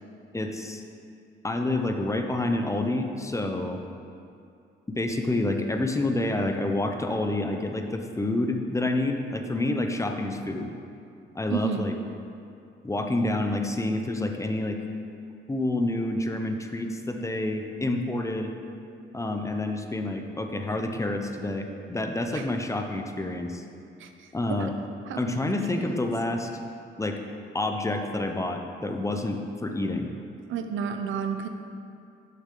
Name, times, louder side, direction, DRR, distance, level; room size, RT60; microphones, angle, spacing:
voice 1, 0.3-0.8 1.4-3.8 4.9-10.7 11.3-11.9 12.8-14.8 15.5-18.5 19.1-23.6 24.3-24.7 25.2-26.5 27.0-27.2 27.5-30.1, left 2 dB, 15° left, 4 dB, 0.8 m, -28 dB
voice 2, 11.5-11.9 22.3-22.5 24.0-24.3 24.6-24.7 25.1-25.2 25.7-26.0 30.5-31.5, right 6 dB, 80° right, 6 dB, 0.7 m, -31 dB
11.0 x 6.6 x 3.8 m, 2.5 s
cardioid pair, 90°, 20 cm